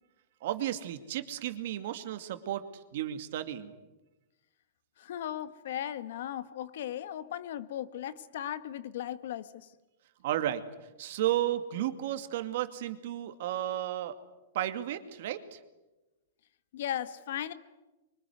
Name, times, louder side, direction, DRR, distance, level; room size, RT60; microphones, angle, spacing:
voice 1, 0.4-3.7 10.2-10.6 11.0-14.1 14.5-15.6, right 12 dB, 50° right, 9 dB, 2.3 m, -33 dB
voice 2, 5.0-9.5 16.7-17.5, left 11 dB, 60° left, 13 dB, 1.5 m, -37 dB
25.0 x 24.5 x 9.6 m, 1.0 s
supercardioid pair, 170°, 0 cm